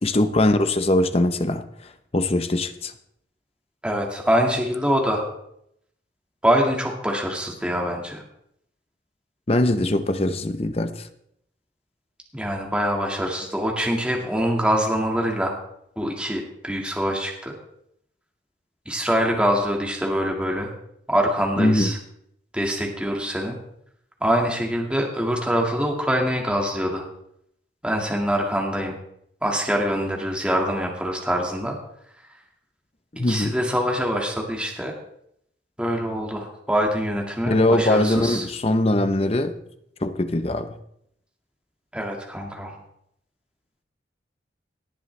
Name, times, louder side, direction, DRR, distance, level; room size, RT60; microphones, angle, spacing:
voice 1, 0.0-1.6 2.1-2.9 9.5-11.1 21.6-21.9 33.2-33.6 37.5-39.6 40.0-40.8, left 1 dB, 35° left, 10 dB, 0.7 m, -21 dB
voice 2, 3.8-5.3 6.4-8.2 12.3-15.6 15.9-17.5 18.8-20.7 21.1-22.0 22.5-23.6 24.2-27.0 27.8-28.9 29.4-31.8 33.3-34.9 35.8-38.5 41.9-42.7, equal, 5° right, 0 dB, 1.8 m, -24 dB
18.0 x 10.0 x 3.3 m, 0.75 s
head